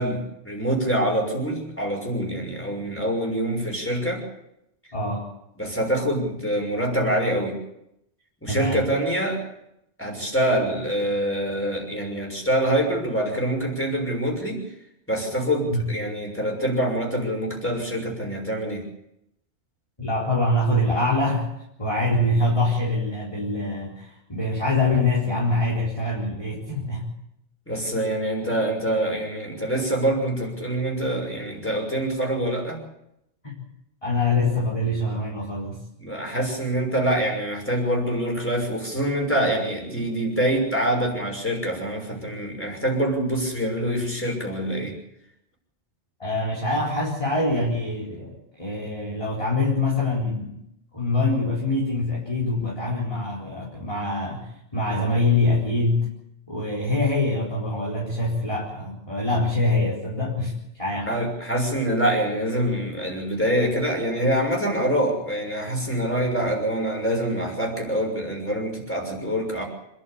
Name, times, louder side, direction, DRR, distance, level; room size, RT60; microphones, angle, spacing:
voice 1, 0.0-4.2 5.6-7.6 8.4-9.4 10.0-14.6 15.1-18.8 27.7-32.8 36.0-45.0 61.1-69.6, right 1 dB, 10° left, 0 dB, 6.3 m, -25 dB
voice 2, 4.9-5.3 8.5-8.8 15.7-15.8 20.0-21.5 21.8-27.1 33.4-33.6 34.0-35.8 46.2-50.6 50.9-56.1 56.5-60.5 60.8-61.2, left 2 dB, 25° left, -6 dB, 4.2 m, -24 dB
27.0 x 11.5 x 8.7 m, 0.81 s
omnidirectional pair, 1.2 m